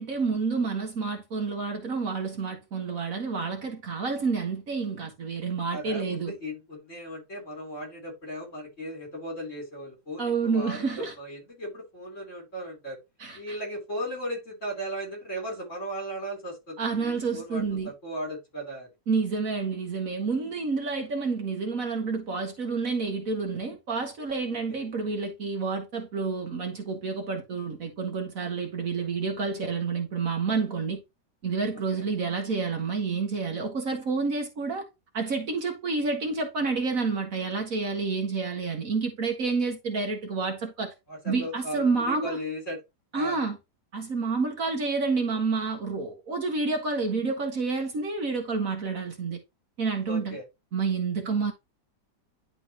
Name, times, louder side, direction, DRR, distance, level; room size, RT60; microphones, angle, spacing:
voice 1, 0.0-6.3 10.2-11.1 13.2-13.6 16.8-17.9 19.1-31.0 31.4-34.8 35.1-40.9 41.2-42.4 43.1-43.6 43.9-49.4 49.8-50.4 50.7-51.5, right 4 dB, 55° right, 1.6 m, -29 dB
voice 2, 5.7-13.0 13.4-18.9 24.7-24.8 31.9-32.0 41.1-42.8 43.1-43.4 50.1-50.4, equal, 45° left, 3.8 m, -37 dB
10.5 x 3.9 x 2.9 m
omnidirectional pair, 1.9 m